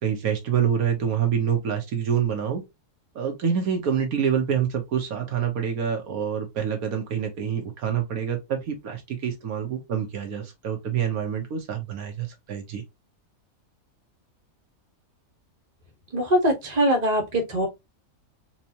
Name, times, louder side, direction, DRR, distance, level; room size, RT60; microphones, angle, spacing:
voice 1, 0.0-2.6 3.1-12.8, right 8 dB, 80° right, 1.4 m, -26 dB
voice 2, 16.1-17.7, equal, 30° right, 1.2 m, -22 dB
4.4 x 2.6 x 2.8 m
omnidirectional pair, 1.5 m